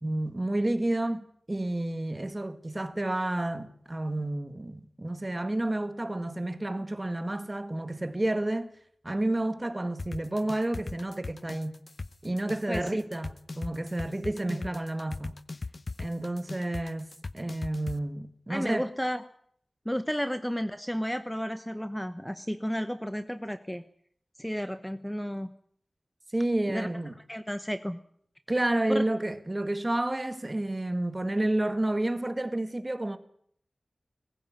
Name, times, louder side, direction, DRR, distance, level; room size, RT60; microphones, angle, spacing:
voice 1, 0.0-8.7 9.0-11.8 12.2-15.4 16.0-18.9 26.3-27.2 28.5-33.2, right 1 dB, 25° right, 1.9 m, -30 dB
sound 1, 10.0-18.0, left 3 dB, 55° left, 0.8 m, -37 dB
voice 2, 12.7-13.0 14.5-14.6 18.5-19.2 19.8-23.8 24.4-25.5 26.7-26.9 27.3-28.0 28.9-29.0, equal, 5° left, 1.0 m, -32 dB
20.5 x 15.0 x 9.6 m
wide cardioid pair, 80°, 0 cm